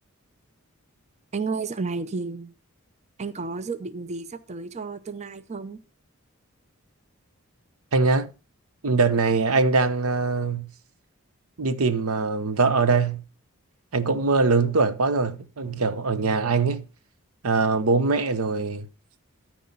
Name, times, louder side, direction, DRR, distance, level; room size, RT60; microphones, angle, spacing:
voice 1, 1.3-2.5 3.2-5.8, right 4 dB, 30° right, 0.5 m, -32 dB
voice 2, 7.9-8.3 8.8-10.7 11.6-13.2 13.9-16.8 17.4-18.9, right 4 dB, 85° right, 0.8 m, -22 dB
13.5 x 4.7 x 5.3 m
head